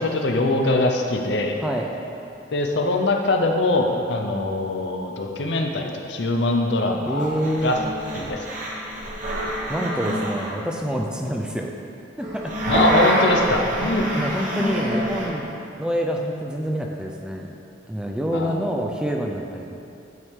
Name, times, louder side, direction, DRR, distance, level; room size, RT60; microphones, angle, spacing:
voice 1, 0.0-1.6 2.5-7.8 8.1-8.4 12.7-14.0 18.3-18.6, left 2 dB, 65° left, 2 dB, 0.6 m, -23 dB
voice 2, 1.6-1.9 7.1-7.7 9.7-11.7 12.2-12.6 13.8-15.5 15.8-17.6 17.9-19.8, equal, 5° right, 0 dB, 0.4 m, -27 dB
sound 1, 6.4-6.5 7.2-10.6 12.2-15.3, equal, 45° right, 1.2 m, -26 dB
8.0 x 4.8 x 3.6 m, 2.7 s
head